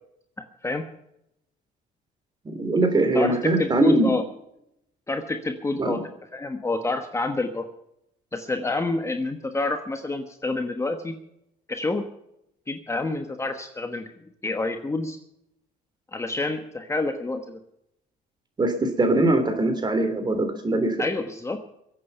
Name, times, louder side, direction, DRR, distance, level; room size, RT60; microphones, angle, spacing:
voice 1, 0.4-0.8 3.1-4.2 5.1-6.0 6.3-7.6 8.3-11.1 11.7-12.0 12.7-14.1 14.4-15.2 16.1-17.6 21.0-21.6, left 2 dB, 15° left, 6 dB, 1.2 m, -28 dB
voice 2, 2.5-4.1 5.8-6.0 18.6-21.0, right 2 dB, 25° right, 8 dB, 3.3 m, -22 dB
22.5 x 8.6 x 5.7 m, 0.80 s
cardioid pair, 110°, 17 cm